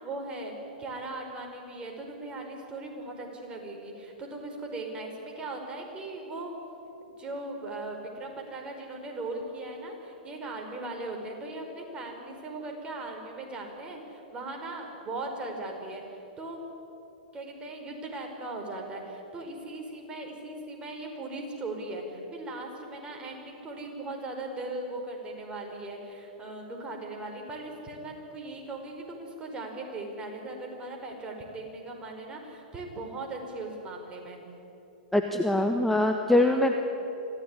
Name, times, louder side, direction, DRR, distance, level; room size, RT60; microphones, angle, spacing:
voice 1, 0.0-0.5 0.8-6.5 7.2-16.6 17.3-34.4 36.4-36.6, right 2 dB, 20° right, 2 dB, 5.1 m, -38 dB
voice 2, 35.1-36.7, left 1 dB, 5° left, 4 dB, 1.4 m, -23 dB
25.5 x 16.0 x 9.9 m, 3.0 s
hypercardioid pair, 110°, 5 cm